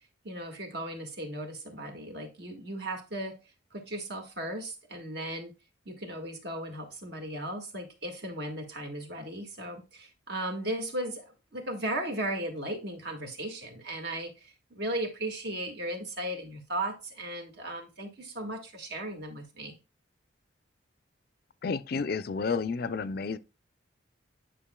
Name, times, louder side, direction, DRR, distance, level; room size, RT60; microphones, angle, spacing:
voice 1, 0.2-3.4 3.7-5.6 5.8-11.2 11.5-19.8, right 1 dB, 60° right, 1.7 m, -36 dB
voice 2, 21.6-23.4, left 5 dB, 50° left, 0.4 m, -31 dB
10.0 x 5.4 x 2.2 m
head